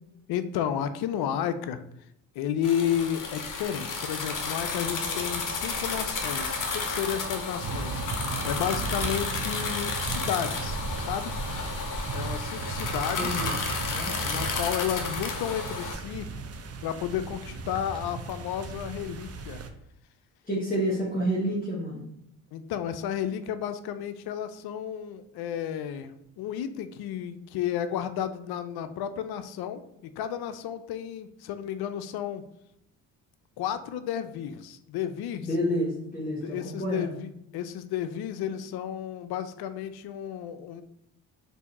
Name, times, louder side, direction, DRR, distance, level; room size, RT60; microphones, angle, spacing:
voice 1, 0.3-1.8 2.3-11.3 12.1-13.4 14.2-16.3 16.8-19.6 20.7-20.8 22.5-32.5 33.6-35.5 36.4-40.8, left 9 dB, 65° left, 10 dB, 0.5 m, -32 dB
sound 1, 2.6-16.0, left 4 dB, 45° left, 0.9 m, -32 dB
sound 2, 7.6-19.7, right 4 dB, 35° right, 0.6 m, -36 dB
voice 2, 13.2-13.5 13.9-14.1 20.5-22.0 35.4-37.1, equal, 20° left, -5 dB, 1.2 m, -29 dB
3.5 x 2.6 x 4.1 m, 0.79 s
supercardioid pair, 60°, 42 cm